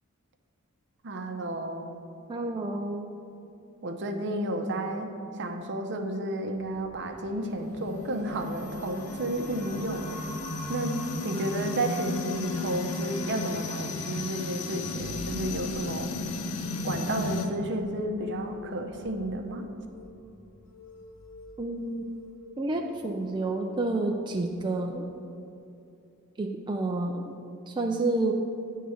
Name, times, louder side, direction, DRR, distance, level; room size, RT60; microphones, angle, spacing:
voice 1, 1.0-1.9 3.8-10.3 10.7-16.1 16.8-19.6, right 1 dB, 55° right, 5 dB, 0.7 m, -32 dB
voice 2, 2.3-3.1 21.6-22.1 22.6-25.1 26.4-27.3 27.7-28.3, right 2 dB, 20° right, 2 dB, 0.4 m, -29 dB
sound 1, 6.5-23.8 24.1-24.6, right 1 dB, 45° left, 1.9 m, -49 dB
sound 2, 7.6-17.5, left 3 dB, 90° left, 0.7 m, -34 dB
sound 3, 19.9-20.2 20.6-24.5, left 1 dB, 60° left, 0.8 m, -51 dB
9.2 x 3.7 x 7.0 m, 2.7 s
head